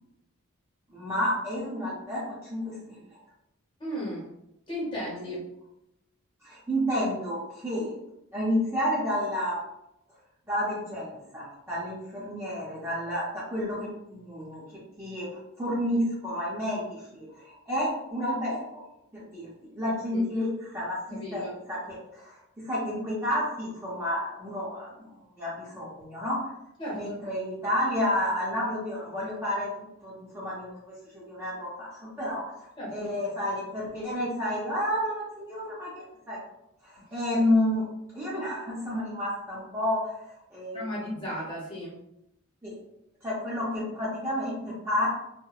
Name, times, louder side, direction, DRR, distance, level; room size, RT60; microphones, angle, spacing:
voice 1, 0.9-2.2 2.5-3.0 5.2-5.3 6.4-7.9 8.3-9.6 10.5-14.6 15.0-15.3 15.6-18.8 19.1-19.5 19.8-22.3 22.6-26.4 27.0-29.7 30.0-36.4 36.8-37.9 38.1-40.1 40.5-40.8 41.1-41.2 42.6-42.7 43.2-45.1, left 1 dB, 10° right, -8 dB, 0.5 m, -30 dB
voice 2, 3.8-4.3 4.7-5.5 20.1-20.3 21.1-21.6 26.8-27.2 32.8-33.1 40.7-41.9, equal, 20° left, -5 dB, 0.7 m, -35 dB
2.8 x 2.0 x 2.3 m, 0.84 s
head